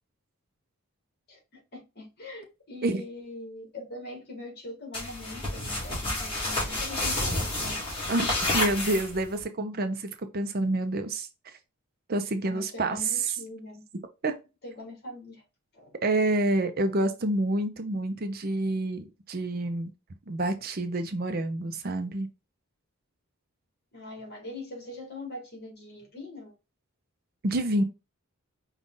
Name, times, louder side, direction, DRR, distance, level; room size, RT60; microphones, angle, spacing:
voice 1, 1.3-7.9 12.4-13.8 14.6-15.4 15.7-15.9 23.9-26.5, left 1 dB, 45° left, 1.7 m, -42 dB
sound 1, 4.9-9.4, left 2 dB, 25° left, 2.1 m, -30 dB
voice 2, 8.1-11.3 12.1-13.3 14.2-14.3 16.0-19.9 20.3-22.3 27.4-27.8, right 2 dB, 45° right, 0.6 m, -28 dB
5.2 x 2.4 x 3.7 m
head